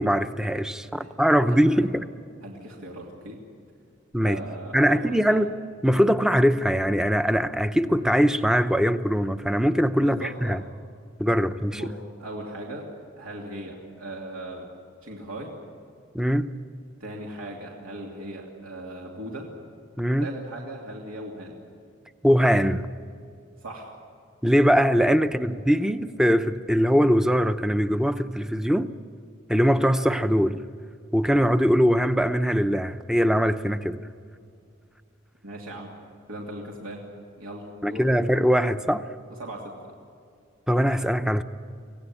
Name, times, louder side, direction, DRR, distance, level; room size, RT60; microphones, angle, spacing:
voice 1, 0.0-2.1 4.1-4.4 4.7-5.5 5.8-10.6 11.2-11.8 16.1-16.5 20.0-20.3 22.2-22.9 24.4-28.9 29.5-30.6 31.1-34.0 37.8-39.0 40.7-41.4, equal, 5° right, 0.6 m, -22 dB
voice 2, 1.5-1.9 2.4-3.4 4.2-5.4 10.0-10.6 11.7-12.9 13.2-14.7 15.0-15.6 17.0-19.5 20.2-21.6 23.6-24.0 25.4-25.5 35.4-36.0 36.3-37.0 37.4-38.1 39.3-39.9, right 1 dB, 85° right, 2.9 m, -38 dB
25.0 x 17.0 x 9.9 m
head